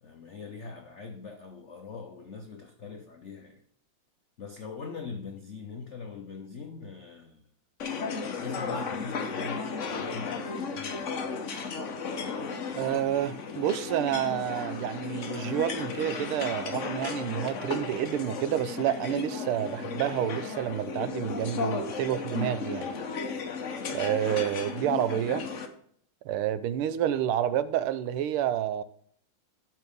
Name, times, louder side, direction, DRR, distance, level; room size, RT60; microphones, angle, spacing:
voice 1, 0.0-3.6 4.4-7.5 8.0-11.1, left 5 dB, 75° left, 0.6 m, -42 dB
sound 1, 7.8-25.7, left 5 dB, 50° left, 0.9 m, -34 dB
voice 2, 12.7-22.9 23.9-25.5 26.2-28.8, right 11 dB, 85° right, 1.5 m, -29 dB
12.0 x 5.9 x 3.5 m
omnidirectional pair, 2.3 m